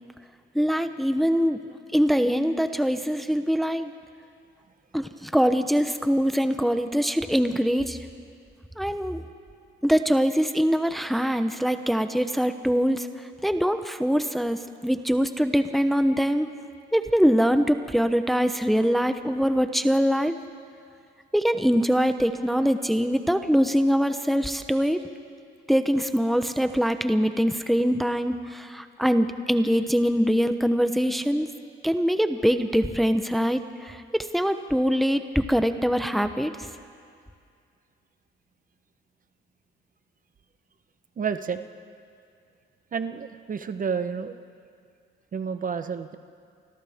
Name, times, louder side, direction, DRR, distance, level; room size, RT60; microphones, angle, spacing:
voice 1, 0.5-3.9 4.9-8.0 8.8-9.2 9.8-13.1 13.4-16.5 16.9-20.4 21.3-25.0 25.7-31.5 31.8-36.5, equal, ahead, 8 dB, 0.9 m, -23 dB
voice 2, 41.2-41.6 42.9-44.4 45.3-46.2, right 6 dB, 45° right, 9 dB, 1.0 m, -30 dB
29.5 x 25.0 x 3.6 m, 2.3 s
cardioid pair, 90°, 20 cm